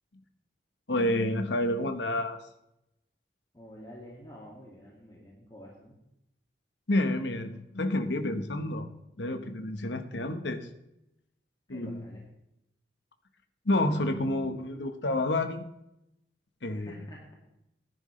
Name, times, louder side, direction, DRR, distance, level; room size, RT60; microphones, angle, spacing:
voice 1, 0.9-2.4 6.9-8.9 9.2-10.7 11.7-12.0 13.6-15.7 16.6-17.0, left 1 dB, 90° left, 8 dB, 1.2 m, -29 dB
voice 2, 3.5-5.9 11.7-12.2 16.7-17.3, equal, 20° left, -4 dB, 2.2 m, -49 dB
16.5 x 10.5 x 3.3 m, 0.84 s
head